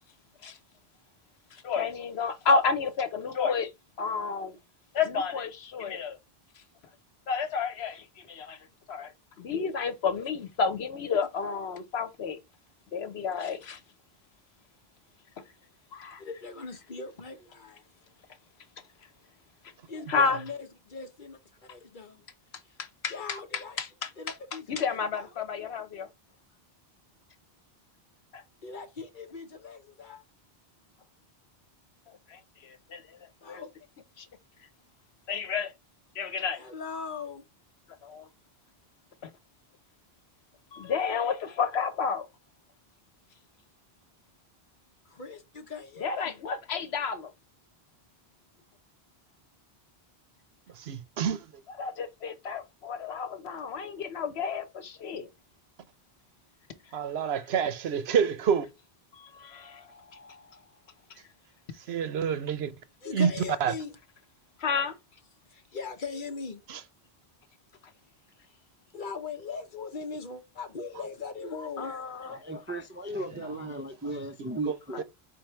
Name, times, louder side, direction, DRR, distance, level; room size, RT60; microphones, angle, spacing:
voice 1, 1.5-3.7 4.0-4.6 4.9-6.2 7.3-9.1 9.4-12.4 12.9-13.8 15.9-16.2 20.1-20.4 22.8-23.1 23.5-24.1 24.7-26.1 28.3-28.4 32.3-33.2 33.5-33.6 34.2-34.3 35.3-35.7 36.1-36.6 37.9-38.3 39.2-39.3 40.7-42.3 46.0-47.3 51.8-55.3 59.1-60.6 61.1-61.2 64.6-65.0 71.8-72.4 74.9-75.0, left 5 dB, 85° left, 1.1 m, -31 dB
voice 2, 16.2-17.9 19.9-22.3 22.6-22.8 23.1-23.8 24.2-25.3 28.6-30.2 33.4-33.7 36.6-37.4 45.0-46.4 63.0-63.9 65.5-66.6 68.4-68.6 68.9-72.0, left 4 dB, 55° left, 1.1 m, -40 dB
voice 3, 50.7-51.5 56.9-58.7 61.8-62.7 63.1-63.3 63.6-63.7 66.7-66.8 73.4-73.7 74.7-75.0, right 7 dB, 80° right, 1.0 m, -28 dB
voice 4, 72.3-75.0, right 1 dB, 20° right, 0.4 m, -36 dB
4.4 x 3.8 x 3.1 m
omnidirectional pair, 1.1 m